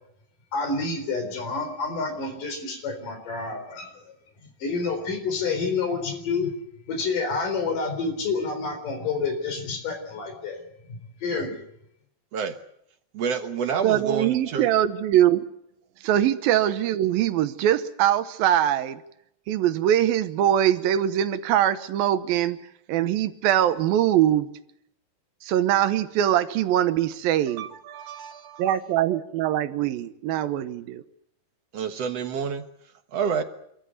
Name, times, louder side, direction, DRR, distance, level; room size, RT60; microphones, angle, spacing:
voice 1, 0.5-4.1 4.4-6.5 6.9-10.6 10.9-11.7, left 4 dB, 65° left, 6 dB, 5.6 m, -29 dB
voice 2, 13.1-14.7 27.5-28.7 31.7-32.7 33.1-33.4, right 6 dB, 55° right, 8 dB, 1.9 m, -29 dB
voice 3, 13.8-15.4 16.0-19.0 19.5-22.6 22.9-24.5 25.4-27.7 28.6-31.0, right 11 dB, 85° right, 12 dB, 2.8 m, -22 dB
25.5 x 14.5 x 9.6 m, 0.76 s
omnidirectional pair, 4.1 m